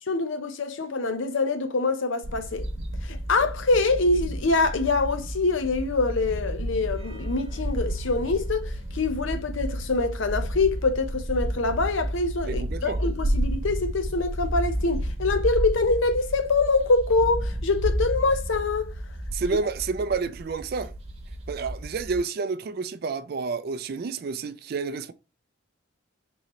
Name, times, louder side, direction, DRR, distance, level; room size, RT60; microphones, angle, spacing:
voice 1, 0.1-2.7 3.0-18.9, left 3 dB, 70° left, 0.6 m, -25 dB
sound 1, 2.2-22.2, equal, 30° right, 0.9 m, -31 dB
voice 2, 12.4-13.0 19.3-20.9 21.5-25.1, right 4 dB, 50° right, 0.3 m, -29 dB
3.8 x 3.0 x 2.9 m
head